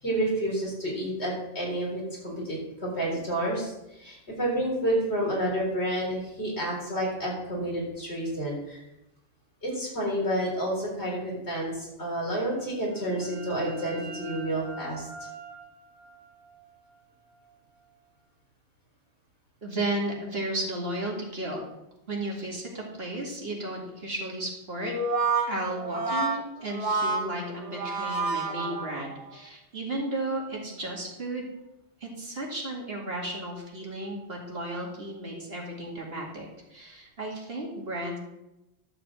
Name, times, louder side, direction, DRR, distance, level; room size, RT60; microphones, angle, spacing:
voice 1, 0.0-8.8 9.6-15.1, right 1 dB, 70° left, -3 dB, 4.4 m, -30 dB
sound 1, 12.6-18.0, right 2 dB, 10° right, 1.8 m, -44 dB
voice 2, 19.6-21.6 22.1-24.9 25.5-31.5 32.0-38.2, right 1 dB, 60° right, -2 dB, 2.6 m, -34 dB
Brass instrument, 24.8-29.3, right 3 dB, 90° right, 2.0 m, -29 dB
11.5 x 5.2 x 7.5 m, 0.91 s
omnidirectional pair, 1.1 m